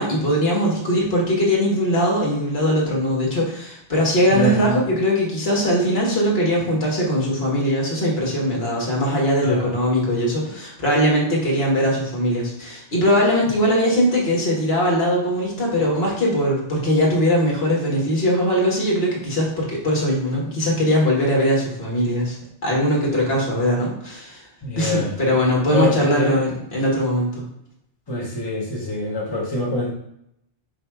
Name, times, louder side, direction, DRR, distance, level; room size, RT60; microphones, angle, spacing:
voice 1, 0.0-22.4 22.6-24.4 24.8-27.3, equal, 60° left, -3 dB, 1.5 m, -20 dB
voice 2, 4.3-4.8 9.4-9.6 24.6-25.1 25.7-26.3 28.1-29.9, left 1 dB, 25° left, -4 dB, 0.8 m, -24 dB
5.1 x 2.2 x 4.4 m, 0.75 s
omnidirectional pair, 1.2 m